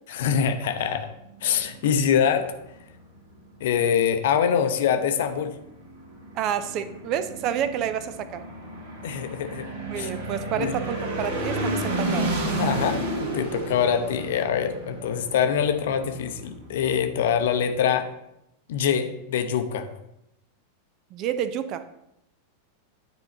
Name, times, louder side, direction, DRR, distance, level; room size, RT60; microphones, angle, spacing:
voice 1, 0.1-1.1 1.4-2.5 3.6-5.5 9.0-9.7 10.0-10.1 10.6-10.7 12.6-18.1 18.7-19.9, left 8 dB, 55° left, 8 dB, 0.7 m, -24 dB
sound 1, 1.3-17.7, right 1 dB, 60° right, 1.7 m, -33 dB
voice 2, 6.3-8.4 9.9-12.4 21.1-21.8, right 9 dB, 40° right, 12 dB, 0.5 m, -29 dB
9.8 x 4.0 x 4.2 m, 0.83 s
figure-of-eight pair, 90°, 0 cm